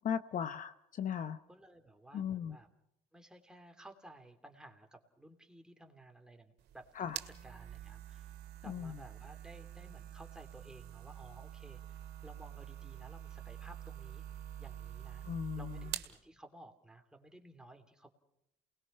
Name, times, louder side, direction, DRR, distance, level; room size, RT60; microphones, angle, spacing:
voice 1, 0.0-1.4 2.1-2.6 7.0-7.2 8.7-9.0 15.2-15.8, left 8 dB, 50° left, 11 dB, 0.9 m, -37 dB
voice 2, 1.5-2.7 3.1-6.9 7.2-8.3 8.6-14.2 14.6-15.2 15.6-18.1, right 1 dB, 5° right, 4 dB, 3.0 m, -56 dB
sound 1, 6.6-16.2, right 11 dB, 80° right, 2.1 m, -47 dB
28.5 x 20.5 x 5.6 m, 0.79 s
cardioid pair, 110°, 17 cm